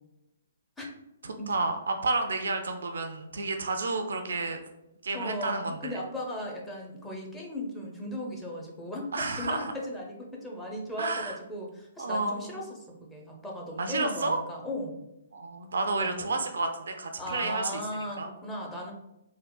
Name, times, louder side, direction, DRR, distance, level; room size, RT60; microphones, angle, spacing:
voice 1, 1.2-4.6 5.0-6.0 9.1-9.7 11.0-11.4 12.0-12.5 13.8-14.4 15.3-17.8 18.2-18.3, right 3 dB, 70° right, 6 dB, 0.3 m, -30 dB
voice 2, 5.1-12.8 13.1-15.0 16.0-16.4 17.2-18.9, left 1 dB, 10° left, -2 dB, 0.6 m, -37 dB
3.5 x 2.1 x 2.2 m, 0.90 s
figure-of-eight pair, 125°, 0 cm